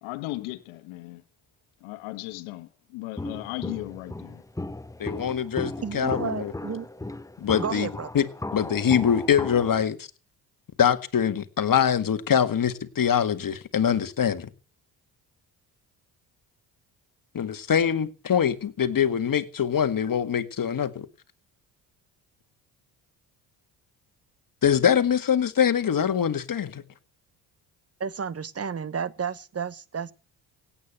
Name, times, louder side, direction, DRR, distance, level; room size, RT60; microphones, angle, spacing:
voice 1, 0.0-1.2 1.8-4.4, left 19 dB, 75° left, 1.5 m, -36 dB
Walk footsteps, 3.2-9.9, left 2 dB, 5° left, 1.1 m, -36 dB
voice 2, 5.0-6.5 7.4-7.9 8.1-8.3 8.5-10.1 10.8-14.5 17.3-21.1 24.6-26.8, left 8 dB, 40° left, 1.9 m, -23 dB
voice 3, 5.8-6.9 7.6-8.1 28.0-30.1, right 6 dB, 30° right, 1.2 m, -32 dB
17.0 x 8.8 x 7.7 m
hypercardioid pair, 55°, 48 cm